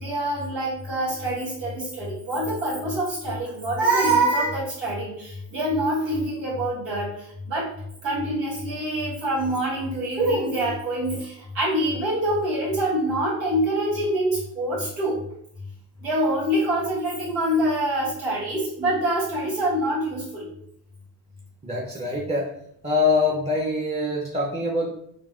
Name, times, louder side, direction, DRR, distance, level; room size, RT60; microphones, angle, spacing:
voice 1, 0.0-7.7 8.0-15.2 16.0-20.5, right 1 dB, 90° right, -7 dB, 1.4 m, -25 dB
voice 2, 21.6-22.4 22.8-24.9, left 3 dB, 15° right, -3 dB, 0.6 m, -24 dB
3.8 x 2.1 x 2.4 m, 0.73 s
hypercardioid pair, 55°, 44 cm